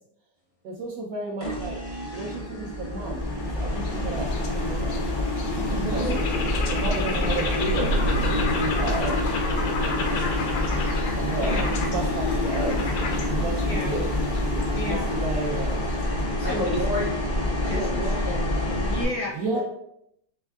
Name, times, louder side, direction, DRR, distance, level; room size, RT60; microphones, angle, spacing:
voice 1, 0.6-1.8 2.1-3.7 4.0-5.0 5.8-10.2 11.1-12.8 13.3-14.1 14.8-15.9 19.3-19.6, right 3 dB, 70° right, -1 dB, 0.9 m, -33 dB
sound 1, 1.4-19.0, left 1 dB, 45° left, 0.6 m, -27 dB
sound 2, 3.0-16.5, left 4 dB, 90° left, 1.4 m, -31 dB
voice 2, 5.7-6.1 11.5-11.7 16.4-18.8 19.5-19.6, equal, 35° right, -6 dB, 0.7 m, -32 dB
sound 3, 7.6-11.3, right 3 dB, 85° right, 1.5 m, -33 dB
voice 3, 13.7-14.0 14.8-15.1 16.4-16.8 17.7-18.0 18.8-19.3, left 1 dB, 65° left, -1 dB, 0.9 m, -32 dB
4.4 x 3.2 x 2.3 m, 0.77 s
omnidirectional pair, 2.0 m